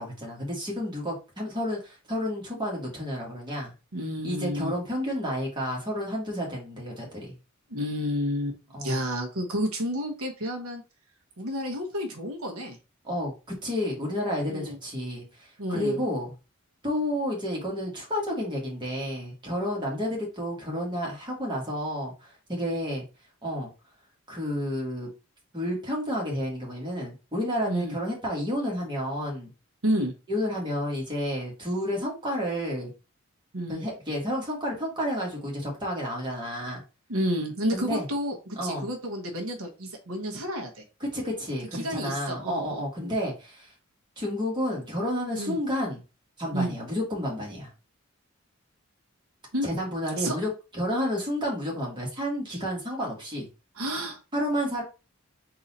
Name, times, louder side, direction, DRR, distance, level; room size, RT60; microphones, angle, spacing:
voice 1, 0.0-3.7 4.2-7.3 8.7-8.9 13.0-16.3 16.8-23.0 23.4-23.7 24.3-25.1 25.5-29.5 30.3-32.9 33.7-36.8 37.7-38.0 38.5-38.9 41.0-43.7 44.2-46.0 46.4-47.7 49.6-53.5 54.3-54.8, equal, 20° right, 1.5 m, -30 dB
voice 2, 3.9-4.7 7.7-10.8 11.4-12.8 14.5-14.8 15.6-16.0 27.7-28.0 29.8-30.1 33.5-33.8 37.1-40.8 41.7-43.1 45.4-45.6 46.5-46.8 49.5-49.7 50.2-50.4 52.5-52.6 53.8-54.2, equal, 90° right, 1.1 m, -30 dB
3.9 x 2.8 x 4.1 m
head